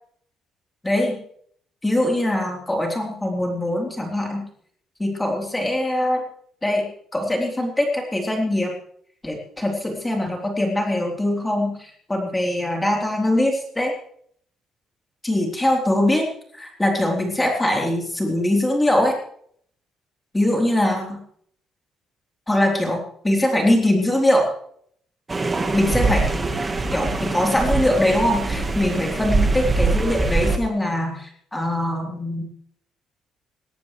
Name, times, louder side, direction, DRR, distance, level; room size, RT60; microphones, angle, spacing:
voice 1, 0.8-1.2 1.8-4.4 5.0-6.2 6.6-8.7 9.2-13.9 15.2-16.2 16.5-19.2 20.3-21.2 22.5-23.0 23.2-24.5 25.7-26.3 26.9-32.4, left 1 dB, 10° left, 0 dB, 3.5 m, -22 dB
sound 1, 25.3-30.6, right 3 dB, 15° right, 1.5 m, -23 dB
19.5 x 17.5 x 3.3 m, 0.62 s
cardioid pair, 180°, 0 cm